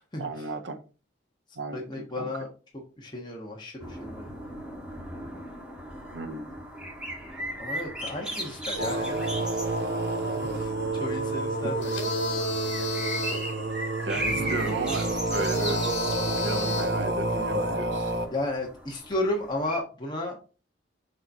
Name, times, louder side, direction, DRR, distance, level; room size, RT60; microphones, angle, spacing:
voice 1, 0.2-0.8 1.5-2.3 6.1-6.5 14.0-15.8 16.4-18.1, right 3 dB, 90° right, 6 dB, 1.2 m, -34 dB
voice 2, 1.7-2.5 3.0-4.3 7.6-9.6 10.2-12.0 18.3-20.4, left 1 dB, 25° left, -1 dB, 1.3 m, -33 dB
sound 1, 3.8-19.8, equal, 5° right, 1.4 m, -38 dB
sound 2, 8.8-18.3, right 2 dB, 60° right, 1.3 m, -29 dB
sound 3, 11.8-13.5 15.3-17.0, left 3 dB, 75° left, 1.9 m, -33 dB
6.6 x 3.3 x 5.4 m, 0.34 s
head